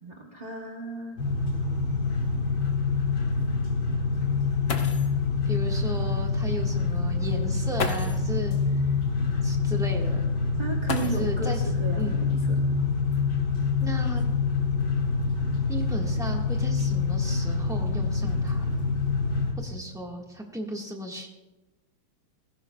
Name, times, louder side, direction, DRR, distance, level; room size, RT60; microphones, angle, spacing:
voice 1, 0.0-1.2 10.6-12.7, right 4 dB, 50° right, 1 dB, 0.5 m, -35 dB
sound 1, 0.8-0.9 1.3-1.4 2.0-2.1 4.3-4.4 4.7-5.2 6.5-6.6 7.7-8.3 10.8-11.6 12.9-13.0 13.8-15.2 15.9-16.3 16.6-17.0, left 5 dB, 55° left, 0.7 m, -35 dB
sound 2, 1.2-19.5, left 4 dB, 70° left, 2.8 m, -26 dB
voice 2, 5.4-8.8 9.4-10.3 11.0-11.6 12.0-12.2 13.8-14.2 15.7-18.7 19.6-21.3, right 1 dB, ahead, 0 dB, 1.1 m, -35 dB
19.0 x 15.5 x 2.3 m, 1.1 s
omnidirectional pair, 2.2 m